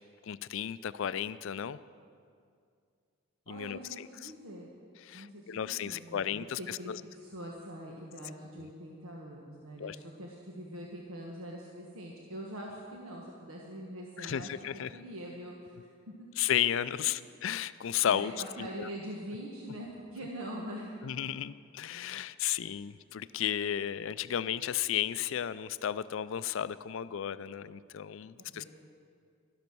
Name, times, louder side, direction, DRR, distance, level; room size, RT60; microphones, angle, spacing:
voice 1, 0.2-1.8 3.5-4.3 5.0-7.0 8.6-8.7 9.8-10.0 14.2-14.9 16.4-18.3 18.6-18.9 21.0-28.6, left 10 dB, 70° left, 16 dB, 0.4 m, -34 dB
voice 2, 3.5-4.7 5.1-6.3 6.6-14.5 14.9-15.8 16.1-16.3 17.0-17.1 18.1-20.9 28.4-28.6, equal, 85° right, -2 dB, 1.4 m, -43 dB
12.0 x 12.0 x 6.1 m, 2.3 s
head